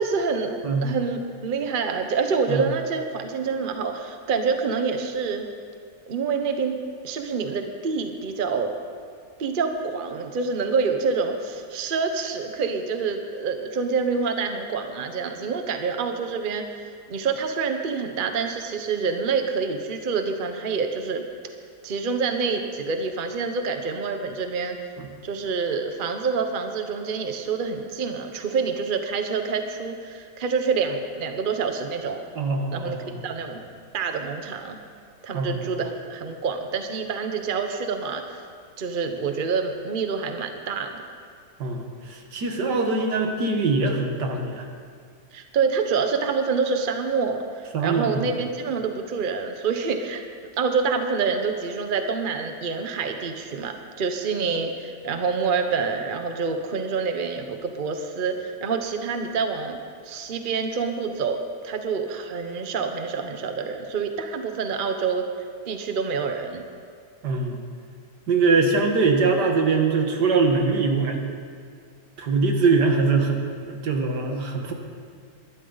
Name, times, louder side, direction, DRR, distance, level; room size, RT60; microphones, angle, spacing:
voice 1, 0.0-5.5 6.1-6.8 7.0-8.7 9.4-21.2 21.8-24.8 25.2-32.2 32.7-33.0 33.2-33.6 33.9-34.8 35.2-38.4 38.8-41.0 45.3-50.2 50.6-59.8 60.0-61.4 61.6-65.2 65.7-66.6, right 5 dB, 35° right, 5 dB, 1.0 m, -27 dB
voice 2, 32.4-33.2 35.3-35.5 41.6-44.7 47.7-48.2 67.2-67.6 68.3-71.2 72.2-74.7, right 4 dB, 80° right, 3 dB, 2.0 m, -22 dB
21.5 x 12.0 x 4.0 m, 2.2 s
omnidirectional pair, 1.8 m